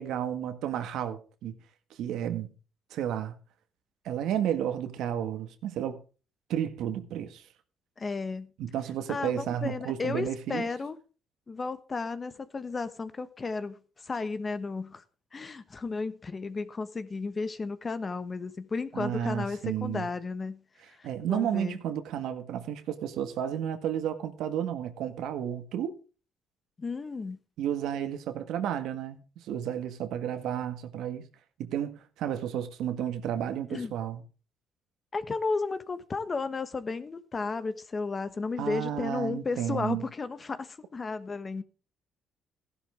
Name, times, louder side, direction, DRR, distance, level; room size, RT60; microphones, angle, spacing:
voice 1, 0.0-1.6 2.0-2.5 2.9-3.4 4.0-6.0 6.5-7.4 8.6-10.7 18.9-20.1 21.0-26.0 27.6-31.3 31.6-34.2 38.6-40.1, right 10 dB, 80° right, 1.7 m, -32 dB
voice 2, 8.0-8.5 9.1-11.0 11.5-13.7 14.0-15.0 15.3-20.6 21.0-21.8 26.8-27.4 33.7-33.9 35.1-41.6, left 4 dB, 30° left, 1.2 m, -33 dB
15.5 x 11.5 x 3.5 m
cardioid pair, 110°, 0 cm